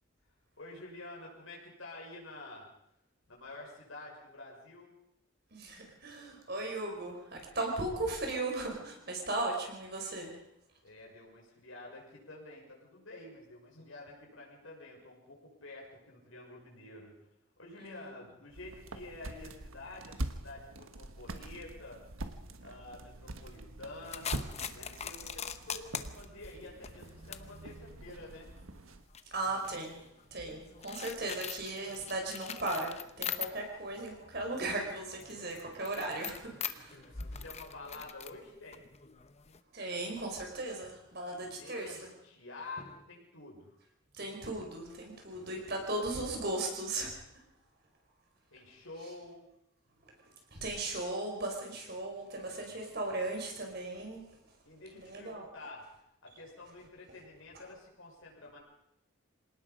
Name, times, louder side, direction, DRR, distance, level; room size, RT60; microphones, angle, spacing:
voice 1, 0.6-2.7 3.3-4.9 10.8-17.2 17.6-22.0 22.6-28.5 36.9-38.8 41.4-43.8 48.5-49.5 54.7-55.9 56.2-58.6, left 2 dB, 70° left, -2 dB, 6.2 m, -49 dB
voice 2, 5.5-10.4 17.8-18.2 29.3-37.0 39.7-42.1 42.8-42.9 44.1-47.4 50.0-54.5 54.9-55.5, right 2 dB, 50° right, 1 dB, 5.0 m, -37 dB
sound 1, 18.5-29.0, right 1 dB, 80° right, 1.4 m, -44 dB
sound 2, 24.1-33.9 34.2-39.6, left 8 dB, 30° left, 0.9 m, -43 dB
27.0 x 18.5 x 5.3 m, 0.81 s
head